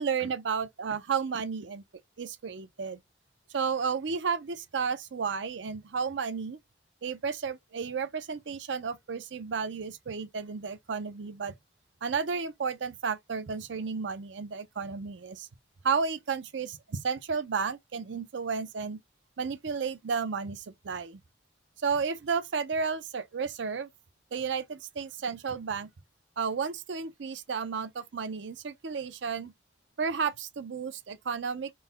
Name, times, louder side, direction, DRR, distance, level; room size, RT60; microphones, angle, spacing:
voice 1, 0.0-1.8 2.2-3.0 3.5-6.6 7.0-11.5 12.0-15.4 15.8-19.0 19.4-21.2 21.8-23.9 24.3-25.9 26.4-29.5 30.0-31.7, right 5 dB, 80° right, 0.5 m, -32 dB
3.7 x 2.2 x 3.9 m
head